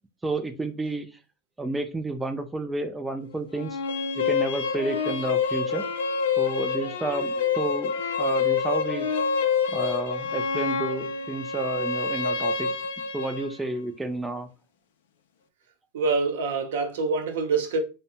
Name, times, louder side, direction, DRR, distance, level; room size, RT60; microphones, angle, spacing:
voice 1, 0.2-1.1 1.6-3.8 4.2-5.9 6.4-7.9 8.2-9.1 9.7-12.7 13.1-14.5, right 2 dB, 10° right, 0.4 m, -31 dB
sound 1, 3.6-13.5, left 5 dB, 90° left, 0.4 m, -27 dB
voice 2, 15.9-17.8, right 4 dB, 85° right, 0.6 m, -25 dB
2.5 x 2.1 x 2.8 m
supercardioid pair, 115°, 0 cm